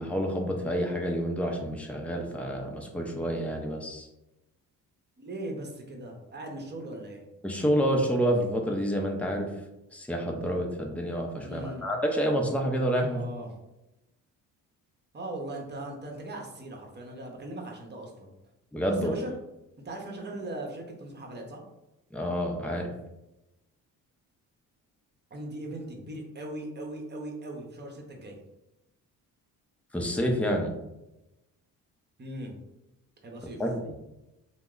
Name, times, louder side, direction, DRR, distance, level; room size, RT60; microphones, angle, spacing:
voice 1, 0.0-4.1 7.4-9.5 9.9-13.2 18.7-19.1 22.1-22.9 29.9-30.7 33.6-33.8, equal, 5° left, 1 dB, 0.7 m, -28 dB
voice 2, 5.2-7.2 11.4-11.9 13.1-13.5 15.1-18.3 19.0-19.3 19.8-21.6 25.3-28.4 32.2-32.5 33.2-33.6, right 1 dB, 30° right, 1 dB, 0.9 m, -39 dB
2.8 x 2.1 x 3.7 m, 0.93 s
supercardioid pair, 70°, 37 cm